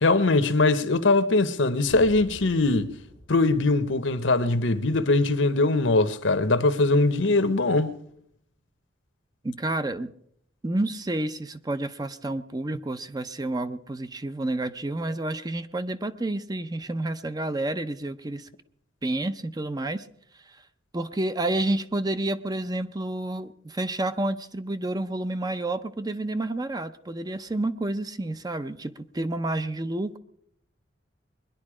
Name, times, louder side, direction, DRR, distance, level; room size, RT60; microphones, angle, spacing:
voice 1, 0.0-3.0 3.3-7.9, left 2 dB, 75° left, 1.0 m, -21 dB
sound 1, 1.9-5.8, equal, 85° right, 7.8 m, -48 dB
voice 2, 9.4-10.1 10.6-18.5 19.0-20.1 20.5-20.6 20.9-30.2, right 2 dB, 20° right, 0.6 m, -29 dB
22.0 x 10.5 x 4.9 m
head